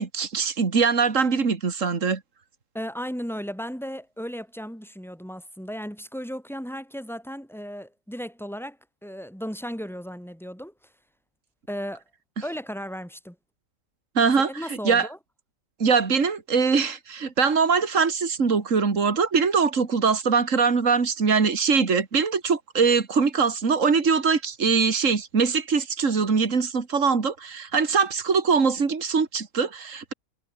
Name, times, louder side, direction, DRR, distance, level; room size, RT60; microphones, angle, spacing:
voice 1, 0.0-2.2 14.2-15.1 15.8-30.1, right 5 dB, 65° right, 2.6 m, -22 dB
voice 2, 2.7-8.8 9.0-10.7 11.7-12.0 12.4-13.4 14.5-15.2, equal, ahead, 7.3 m, -35 dB
omnidirectional pair, 1.5 m